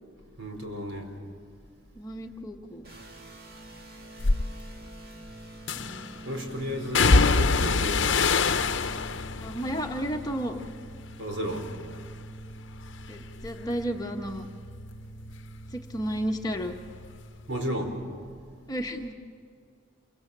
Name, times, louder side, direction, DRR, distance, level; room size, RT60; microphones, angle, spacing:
voice 1, 0.4-1.1 6.2-8.2 11.2-11.7 17.5-18.0, equal, 70° right, 2 dB, 4.9 m, -33 dB
voice 2, 2.0-2.8 5.8-6.2 9.4-10.6 13.1-14.5 15.7-16.8 18.7-19.1, equal, 20° left, 3 dB, 1.2 m, -32 dB
sound 1, 2.8-17.2, right 2 dB, 50° right, 2.3 m, -45 dB
sound 2, 4.2-4.4 5.7-6.1 6.9-11.2 11.5-12.1 12.5-15.8 16.1-17.2 17.5-17.6, left 4 dB, 70° left, 0.7 m, -26 dB
27.5 x 25.0 x 7.4 m, 2.2 s
head